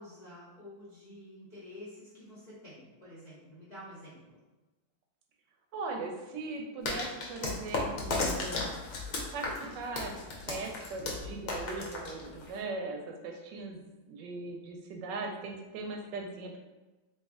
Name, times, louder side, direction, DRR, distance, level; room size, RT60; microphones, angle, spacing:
voice 1, 0.0-4.4, left 1 dB, 85° left, -9 dB, 0.3 m, -49 dB
voice 2, 5.7-8.7 9.3-16.6, right 3 dB, 75° right, 2 dB, 1.1 m, -39 dB
sound 1, 6.8-12.6, left 3 dB, 65° left, 0.8 m, -35 dB
3.2 x 2.9 x 3.5 m, 1.1 s
omnidirectional pair, 2.2 m